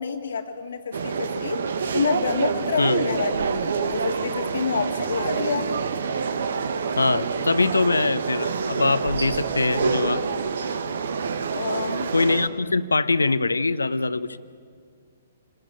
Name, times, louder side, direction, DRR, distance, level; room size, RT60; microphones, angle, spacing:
voice 1, 0.0-1.6 1.9-5.7 11.5-12.1, left 5 dB, 65° left, 3 dB, 1.7 m, -28 dB
sound 1, 0.9-12.5, right 5 dB, 60° right, 1.4 m, -27 dB
voice 2, 7.0-10.2 12.1-14.4, left 3 dB, 80° left, 15 dB, 0.9 m, -23 dB
28.0 x 20.0 x 9.2 m, 2.1 s
figure-of-eight pair, 120°, 0 cm